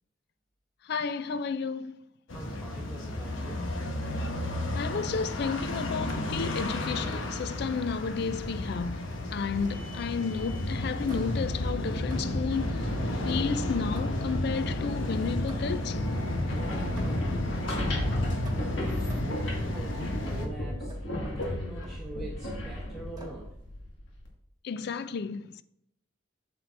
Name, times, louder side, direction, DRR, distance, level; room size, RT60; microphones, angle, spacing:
voice 1, 0.8-2.0 4.8-12.9 13.2-16.1 24.6-25.6, left 5 dB, 55° left, 0.3 m, -32 dB
sound 1, 2.3-20.5, left 1 dB, 90° left, 1.0 m, -32 dB
voice 2, 2.3-3.7 16.4-18.2 18.5-23.5, right 1 dB, ahead, 0.9 m, -44 dB
sound 2, 6.1-6.4 7.1-7.5 9.1-10.2 11.1-11.6 12.1-12.6 13.3-14.4 15.5-15.9 17.0-17.4 18.4-19.5 20.9-21.1 21.4-22.1 23.2-23.5, right 1 dB, 20° right, 1.5 m, -49 dB
sound 3, 16.3-24.3, left 1 dB, 70° left, 1.8 m, -35 dB
7.8 x 6.7 x 2.5 m
head